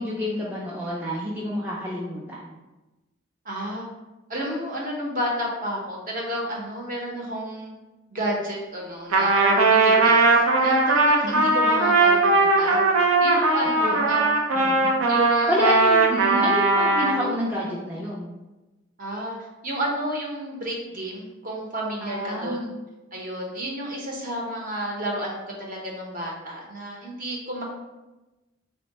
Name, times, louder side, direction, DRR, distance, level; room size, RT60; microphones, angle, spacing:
voice 1, 0.0-2.5 11.2-11.6 13.8-14.0 14.5-14.9 15.5-18.3 22.0-22.7, equal, 10° right, -6 dB, 0.4 m, -28 dB
voice 2, 3.4-3.9 4.3-7.7 8.1-12.9 13.2-14.4 15.1-15.5 19.0-19.3 19.6-22.7 23.1-27.6, equal, 40° right, -2 dB, 0.7 m, -31 dB
Trumpet, 9.1-17.2, right 3 dB, 80° right, 0.5 m, -19 dB
3.5 x 2.1 x 3.9 m, 1.1 s
head